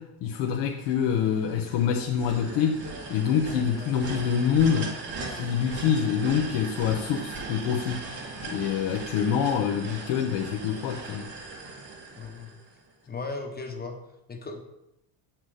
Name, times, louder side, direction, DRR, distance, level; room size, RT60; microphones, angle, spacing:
voice 1, 0.0-2.8 3.1-4.9 5.3-8.1 8.4-11.3, left 7 dB, 75° left, 0.9 m, -26 dB
sound 1, 0.8-12.9, right 3 dB, 60° right, 2.4 m, -39 dB
sound 2, 2.5-8.7, right 3 dB, 80° right, 1.9 m, -46 dB
voice 2, 12.1-12.5 13.1-14.0 14.3-14.6, left 3 dB, 20° left, 1.1 m, -36 dB
7.9 x 6.0 x 4.9 m
cardioid pair, 115°, 44 cm